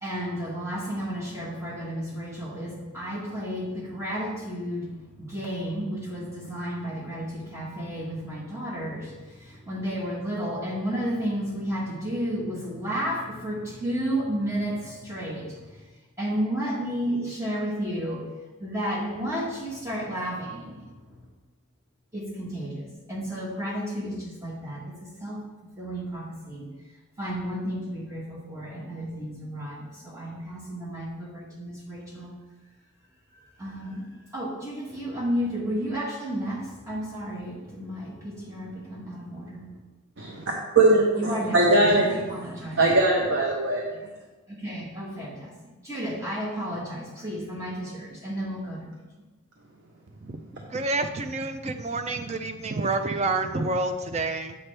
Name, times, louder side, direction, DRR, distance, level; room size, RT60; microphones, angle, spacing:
voice 1, 0.0-4.9 5.2-15.8 16.2-18.3 18.6-21.2 22.1-25.4 25.8-26.7 27.2-32.3 33.6-34.1 34.3-39.7 41.2-42.9 44.5-45.5 45.8-48.9, equal, 15° right, -5 dB, 1.2 m, -32 dB
voice 2, 40.8-42.4 42.8-43.8, right 2 dB, 55° right, -1 dB, 0.8 m, -21 dB
voice 3, 50.7-54.6, right 3 dB, 30° right, 7 dB, 0.4 m, -28 dB
7.4 x 5.9 x 3.3 m, 1.2 s
head